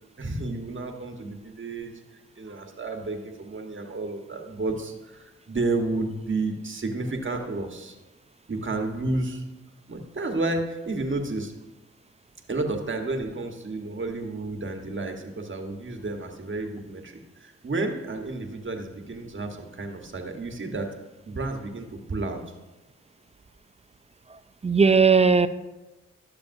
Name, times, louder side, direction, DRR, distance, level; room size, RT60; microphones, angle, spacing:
voice 1, 0.2-1.9 2.4-7.9 8.5-9.4 9.9-11.5 12.5-20.9 21.3-22.4, right 2 dB, 40° right, 3 dB, 1.2 m, -31 dB
voice 2, 24.3-25.5, right 5 dB, 20° right, 12 dB, 0.4 m, -19 dB
11.5 x 6.9 x 2.6 m, 1.1 s
cardioid pair, 50°, 29 cm